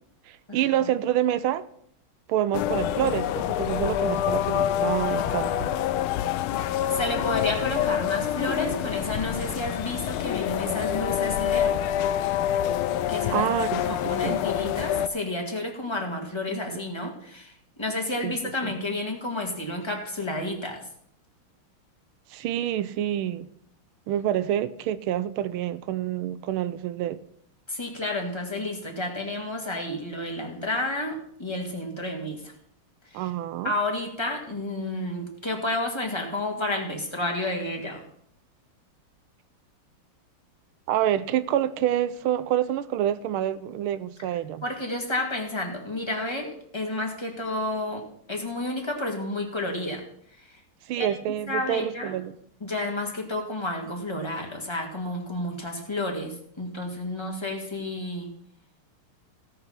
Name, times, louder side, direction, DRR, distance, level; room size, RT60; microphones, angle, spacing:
voice 1, 0.3-1.7 2.3-5.7 13.3-14.4 16.5-16.8 18.2-18.3 18.6-18.8 22.3-23.5 24.1-27.2 33.1-33.7 40.9-44.6 50.9-52.4, right 11 dB, 80° right, 1.5 m, -27 dB
sound 1, 2.5-15.1, left 11 dB, 80° left, 1.5 m, -26 dB
voice 2, 6.9-11.8 13.1-13.5 13.8-20.8 27.7-32.5 33.1-33.3 33.6-38.0 44.6-48.0 48.3-50.0 50.4-50.5 51.0-51.1 51.5-52.2 52.6-58.3, left 2 dB, 15° left, 2.0 m, -31 dB
16.5 x 5.9 x 5.8 m
omnidirectional pair, 2.4 m